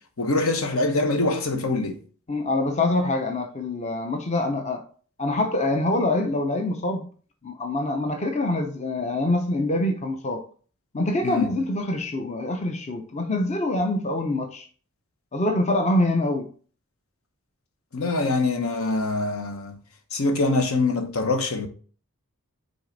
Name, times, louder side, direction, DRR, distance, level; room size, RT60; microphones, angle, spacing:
voice 1, 0.2-2.0 11.2-11.5 17.9-19.8 20.1-21.7, left 2 dB, 70° left, 1.0 m, -24 dB
voice 2, 2.3-4.8 5.2-7.1 7.4-10.4 10.9-14.7 15.3-16.5, left 2 dB, 30° left, 0.6 m, -25 dB
6.3 x 4.0 x 3.9 m
head